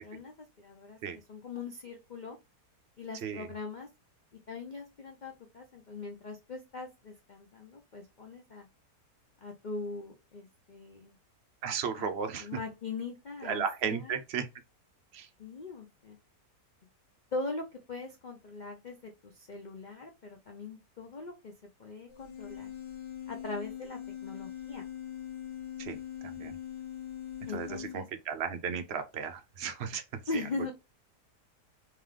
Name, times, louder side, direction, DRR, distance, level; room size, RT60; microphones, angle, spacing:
voice 1, 0.0-2.4 3.0-3.9 4.5-8.7 9.4-11.2 12.0-14.2 15.4-16.2 17.3-21.5 21.8-22.7 23.3-24.9 27.5-28.1 30.3-30.7, left 3 dB, 65° left, 0.4 m, -41 dB
voice 2, 11.6-12.5 13.4-14.5 15.1-15.3 25.8-26.0 26.4-26.5 27.5-27.7 27.9-30.0, right 7 dB, 65° right, 0.6 m, -34 dB
sound 1, 22.1-28.0, left 10 dB, 80° left, 1.8 m, -42 dB
3.7 x 3.4 x 3.3 m
omnidirectional pair, 1.8 m